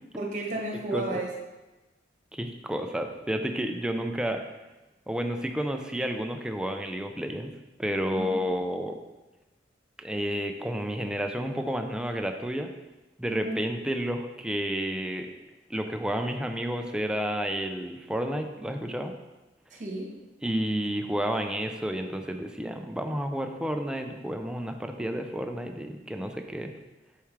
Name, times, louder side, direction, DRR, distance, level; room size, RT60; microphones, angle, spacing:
voice 1, 0.2-1.3 8.1-8.3 13.3-13.6 19.7-20.2, right 2 dB, 45° right, -1 dB, 1.2 m, -33 dB
voice 2, 2.3-4.4 5.1-7.5 7.8-9.0 10.0-12.7 13.2-15.3 15.7-19.1 20.4-26.7, equal, 5° right, 5 dB, 0.4 m, -31 dB
6.9 x 4.7 x 3.2 m, 1.1 s
head